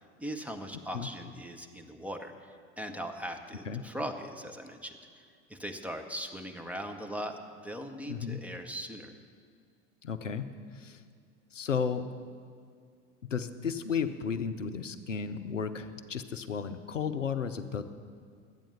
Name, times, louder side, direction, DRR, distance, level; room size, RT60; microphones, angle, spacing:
voice 1, 0.2-5.0 5.5-7.4 7.6-9.1, equal, 5° right, 3 dB, 0.9 m, -39 dB
voice 2, 8.1-8.4 10.0-11.0 11.5-12.1 13.2-17.8, left 6 dB, 85° left, 10 dB, 0.6 m, -34 dB
12.0 x 8.9 x 7.0 m, 2.2 s
figure-of-eight pair, 75°, 37 cm